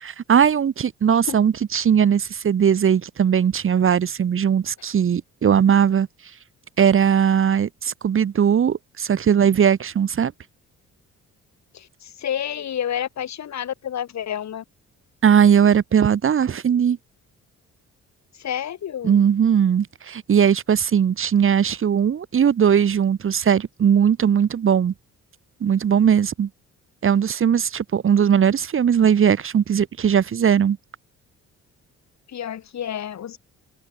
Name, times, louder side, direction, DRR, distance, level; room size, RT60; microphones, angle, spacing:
voice 1, 0.0-6.1 6.8-10.3 15.2-17.0 19.0-24.9 25.6-26.5 27.0-30.8, right 8 dB, 45° right, 1.2 m, -19 dB
voice 2, 11.7-14.6 18.4-19.2 32.3-33.4, left 10 dB, 65° left, 7.6 m, -29 dB
open air
cardioid pair, 90°, 30 cm